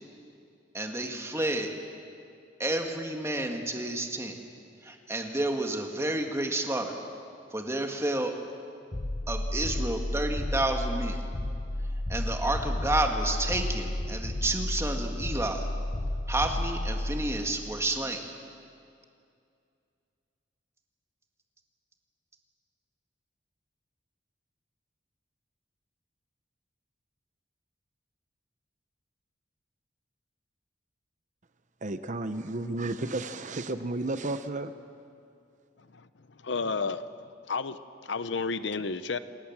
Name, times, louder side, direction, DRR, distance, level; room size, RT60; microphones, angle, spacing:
voice 1, 0.7-1.7 2.6-4.4 4.8-6.9 7.5-8.3 9.3-11.2 12.1-15.7 16.3-18.3, right 2 dB, 15° right, 3 dB, 1.9 m, -30 dB
sound 1, 8.9-18.0, left 1 dB, 30° left, 0.8 m, -32 dB
voice 2, 31.8-34.7, right 2 dB, 45° right, 10 dB, 0.8 m, -32 dB
voice 3, 36.4-37.1 37.5-39.2, left 4 dB, 70° left, 13 dB, 0.8 m, -31 dB
26.5 x 18.5 x 7.4 m, 2.4 s
head